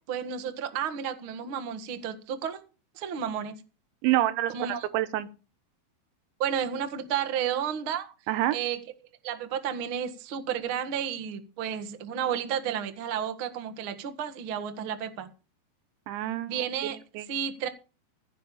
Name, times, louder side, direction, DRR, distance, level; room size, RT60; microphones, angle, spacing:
voice 1, 0.1-2.6 2.9-3.6 4.5-4.9 6.4-8.1 8.5-8.8 9.2-15.3 16.5-17.0 17.3-17.7, right 8 dB, 65° right, 1.3 m, -32 dB
voice 2, 4.0-5.3 8.3-8.6 16.1-16.6 16.8-17.3, right 14 dB, 80° right, 3.2 m, -27 dB
15.5 x 6.8 x 7.1 m
omnidirectional pair, 5.3 m